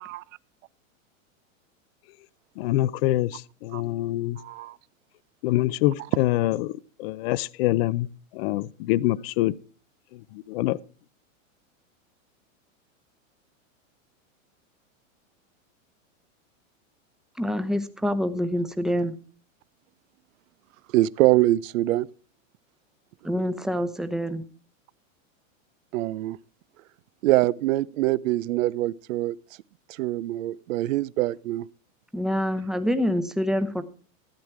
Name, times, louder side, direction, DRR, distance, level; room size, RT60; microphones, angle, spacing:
voice 1, 2.6-4.4 5.4-9.5 10.1-10.8, left 16 dB, 45° left, 0.6 m, -25 dB
voice 2, 4.4-4.8 20.9-22.1 25.9-26.4 27.2-29.4 30.0-31.7, right 16 dB, 70° right, 0.6 m, -24 dB
voice 3, 17.4-19.1 23.2-24.4 32.1-33.8, equal, ahead, 0.8 m, -26 dB
14.5 x 8.8 x 4.6 m
supercardioid pair, 140°, 40 cm